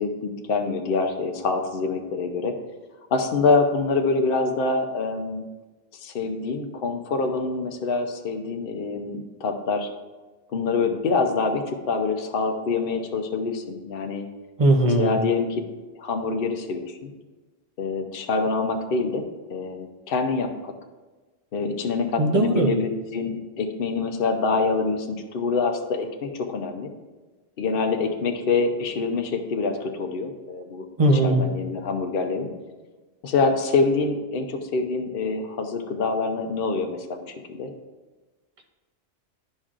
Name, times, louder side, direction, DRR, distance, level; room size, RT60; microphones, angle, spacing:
voice 1, 0.0-2.6 3.1-5.4 6.0-9.9 10.5-14.3 15.0-15.6 16.0-17.1 17.8-19.2 19.5-20.7 21.5-26.9 27.6-30.8 31.2-32.5 33.2-37.7, left 4 dB, 55° left, 4 dB, 0.8 m, -25 dB
voice 2, 14.6-15.1 22.2-22.7 31.0-31.4, right 1 dB, 35° right, 2 dB, 0.7 m, -19 dB
10.0 x 5.3 x 2.5 m, 1.2 s
omnidirectional pair, 1.2 m